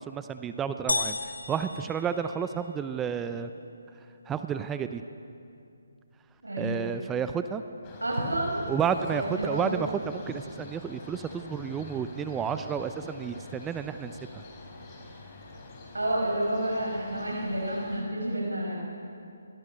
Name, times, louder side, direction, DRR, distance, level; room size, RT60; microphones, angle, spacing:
voice 1, 0.0-3.5 4.3-5.0 6.6-7.6 8.7-14.4, right 7 dB, 10° right, 10 dB, 0.6 m, -31 dB
sound 1, 0.9-2.8, left 3 dB, 75° left, 2.0 m, -33 dB
voice 2, 6.4-6.9 8.0-8.7 9.1-9.8 15.9-18.7, right 1 dB, 80° right, -2 dB, 5.9 m, -30 dB
sound 2, 7.8-18.0, left 2 dB, 25° left, 4.4 m, -46 dB
26.5 x 21.0 x 6.8 m, 2.6 s
figure-of-eight pair, 145°, 0 cm